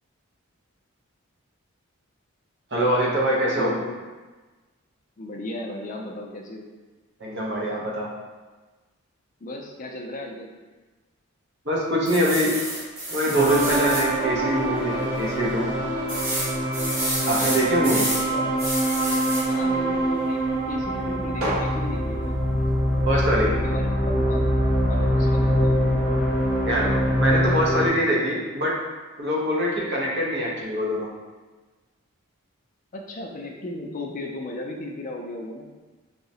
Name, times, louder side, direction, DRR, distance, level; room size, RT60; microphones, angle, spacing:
voice 1, 2.7-3.7 7.2-8.1 11.6-12.6 13.1-15.7 17.3-18.1 23.0-23.5 26.7-28.8 29.2-31.1, equal, 50° right, -4 dB, 0.7 m, -24 dB
voice 2, 3.6-4.0 5.2-6.7 9.4-10.5 17.6-18.5 19.5-22.4 23.5-24.5 24.9-25.8 32.9-35.7, left 1 dB, 35° left, 1 dB, 0.3 m, -35 dB
sound 1, 12.1-14.1 14.6-14.7 15.0-15.1 16.1-18.2 18.6-19.5 21.4-21.6, right 1 dB, 70° right, 1.1 m, -29 dB
sound 2, 13.3-27.9, equal, 10° right, 0.9 m, -24 dB
4.6 x 2.0 x 2.7 m, 1.3 s
head